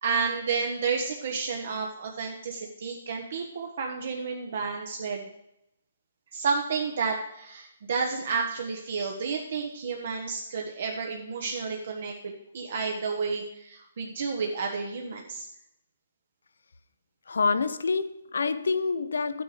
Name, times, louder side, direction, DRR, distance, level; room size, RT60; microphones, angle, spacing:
voice 1, 0.0-5.3 6.3-15.5, right 5 dB, 45° right, 1.2 m, -31 dB
voice 2, 17.3-19.4, left 4 dB, 90° left, 0.9 m, -27 dB
12.5 x 9.2 x 5.1 m
hypercardioid pair, 180°, 0 cm